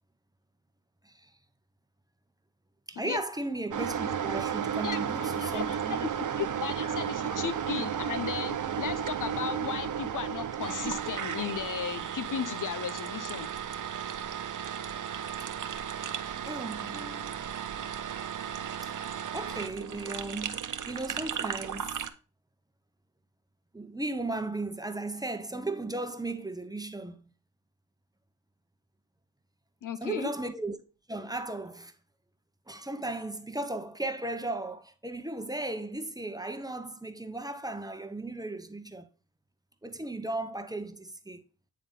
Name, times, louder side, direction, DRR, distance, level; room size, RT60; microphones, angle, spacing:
voice 1, 2.9-6.1 16.4-17.5 18.8-18.9 19.3-22.0 23.7-27.3 30.0-30.8 31.1-31.9 32.7-39.1 39.8-41.4, right 2 dB, 10° right, 0.9 m, -36 dB
sound 1, 3.7-22.1, right 8 dB, 50° right, 0.7 m, -34 dB
voice 2, 4.8-13.5 29.8-30.3, left 8 dB, 50° left, 0.5 m, -35 dB
9.0 x 3.7 x 3.8 m
supercardioid pair, 45°, 40 cm